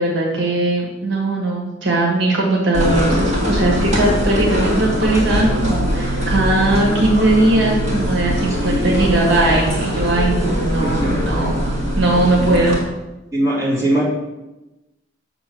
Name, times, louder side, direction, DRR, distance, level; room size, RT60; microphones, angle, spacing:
voice 1, 0.0-11.6 12.0-12.8, right 2 dB, 65° right, -2 dB, 1.5 m, -19 dB
sound 1, 2.7-12.8, equal, 35° right, 1.8 m, -21 dB
voice 2, 8.5-9.1 10.4-10.5 10.8-11.5 13.3-14.0, right 1 dB, 15° right, -9 dB, 2.8 m, -22 dB
6.6 x 3.8 x 6.1 m, 1.0 s
head